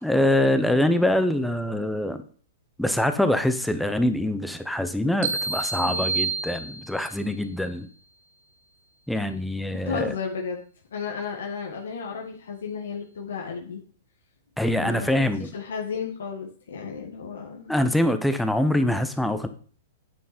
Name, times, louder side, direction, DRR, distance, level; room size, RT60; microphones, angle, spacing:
voice 1, 0.0-2.2 2.8-7.9 9.1-10.1 14.6-15.5 17.7-19.5, left 1 dB, ahead, 9 dB, 0.8 m, -24 dB
sound 1, 5.2-7.2, right 3 dB, 65° right, 1.8 m, -29 dB
voice 2, 9.7-10.6 10.9-13.8 14.8-15.2 15.5-17.7, left 6 dB, 80° left, 0 dB, 1.9 m, -33 dB
9.2 x 6.3 x 4.4 m, 0.44 s
hypercardioid pair, 135°, 0 cm